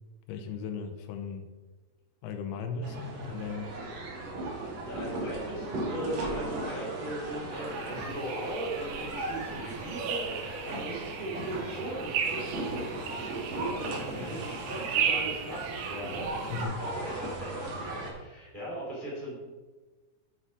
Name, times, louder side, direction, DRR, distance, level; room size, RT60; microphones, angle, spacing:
voice 1, 0.3-1.5 2.2-3.8 16.5-16.8, left 5 dB, 85° left, 6 dB, 2.7 m, -36 dB
sound 1, 2.8-18.1, right 2 dB, 60° right, 1.8 m, -37 dB
voice 2, 4.8-19.3, right 1 dB, 20° right, -5 dB, 1.5 m, -38 dB
sound 2, 7.5-16.6, right 7 dB, 85° right, 1.7 m, -36 dB
7.7 x 4.2 x 4.8 m, 1.3 s
omnidirectional pair, 4.5 m